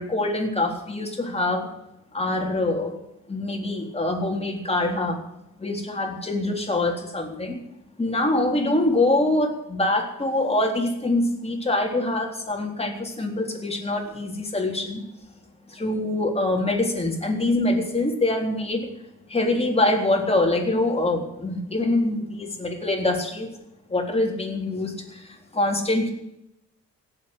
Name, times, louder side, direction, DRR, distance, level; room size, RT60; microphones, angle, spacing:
voice 1, 0.0-1.7 2.1-2.9 3.3-5.2 5.6-7.6 8.0-15.0 15.7-18.9 19.3-23.5 23.9-26.1, left 2 dB, 20° left, 2 dB, 3.7 m, -24 dB
17.0 x 8.0 x 8.1 m, 0.86 s
cardioid pair, 90°, 30 cm